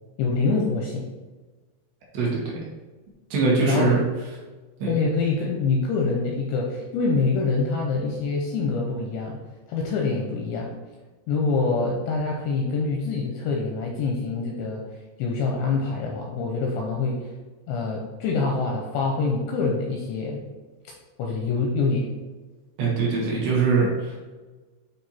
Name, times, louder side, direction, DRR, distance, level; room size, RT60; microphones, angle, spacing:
voice 1, 0.2-1.0 3.6-4.0 4.9-9.4 9.7-10.7 11.3-14.8 15.2-17.3 17.7-20.4 21.2-22.1, left 4 dB, 85° left, 0 dB, 2.6 m, -25 dB
voice 2, 2.1-2.6 3.3-4.0 4.8-5.0 22.8-24.3, right 4 dB, 65° right, -4 dB, 3.3 m, -23 dB
8.9 x 3.3 x 4.3 m, 1.3 s
omnidirectional pair, 5.8 m